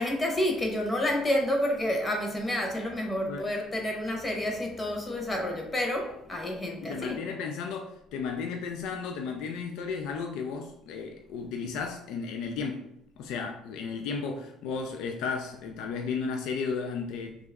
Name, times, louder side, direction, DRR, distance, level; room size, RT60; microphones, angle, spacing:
voice 1, 0.0-7.2, left 1 dB, 20° left, 0.8 m, -29 dB
voice 2, 6.8-12.9 13.2-17.4, left 5 dB, 75° left, 0.3 m, -34 dB
3.0 x 2.3 x 3.4 m
cardioid pair, 115°, 0 cm